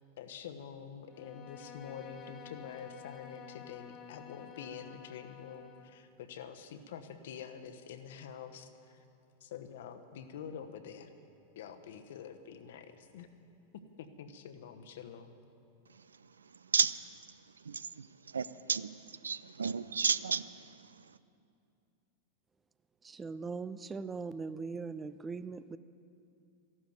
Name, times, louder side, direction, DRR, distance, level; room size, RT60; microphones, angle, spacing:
voice 1, 0.2-9.0 9.4-11.1 11.5-13.3 14.0-15.4, left 7 dB, 55° left, 8 dB, 1.0 m, -47 dB
Bowed string instrument, 1.1-6.0, left 8 dB, 30° left, 1.1 m, -51 dB
voice 2, 17.7-18.1 18.3-18.9 19.2-20.6, right 6 dB, 70° right, 16 dB, 0.4 m, -31 dB
voice 3, 23.0-25.8, right 4 dB, 15° right, 15 dB, 0.4 m, -40 dB
14.0 x 12.0 x 7.9 m, 2.6 s
figure-of-eight pair, 90°, 0 cm